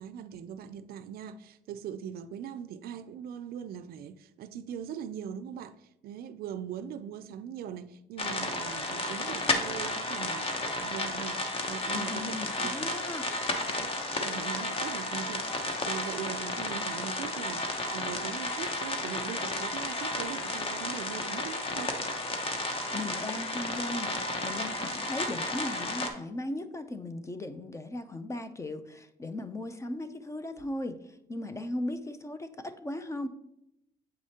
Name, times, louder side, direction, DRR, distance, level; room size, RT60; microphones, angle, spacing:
voice 1, 0.0-5.8 6.0-11.4 11.6-12.9 13.7-22.0, right 8 dB, 65° right, 0.4 m, -41 dB
sound 1, 8.2-26.1, left 2 dB, 35° left, 0.9 m, -33 dB
voice 2, 11.9-13.3 22.4-24.1 24.4-33.3, left 1 dB, 15° left, 0.5 m, -37 dB
7.7 x 4.8 x 2.8 m
cardioid pair, 110°, 17 cm